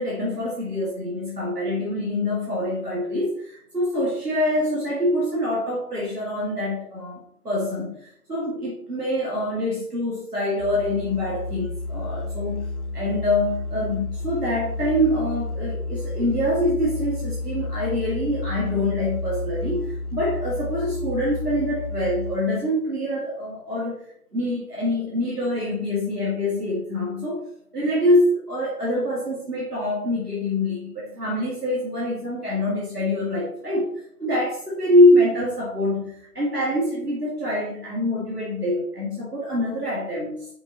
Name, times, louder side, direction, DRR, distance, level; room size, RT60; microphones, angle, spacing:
voice 1, 0.0-7.2 7.4-24.0 24.3-27.4 27.7-33.9 34.2-40.5, left 1 dB, 85° right, -5 dB, 2.3 m, -25 dB
Musical instrument, 10.6-22.6, left 2 dB, 85° left, 0.7 m, -31 dB
7.1 x 5.2 x 2.9 m, 0.68 s
figure-of-eight pair, 155°, 45 cm